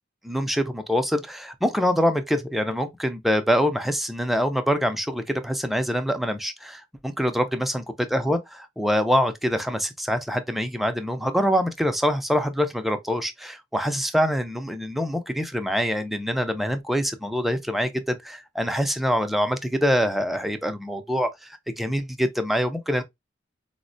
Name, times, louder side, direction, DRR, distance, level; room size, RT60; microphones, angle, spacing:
voice 1, 0.2-7.8 8.1-23.0, equal, ahead, 0.4 m, -25 dB
4.2 x 2.1 x 2.5 m
head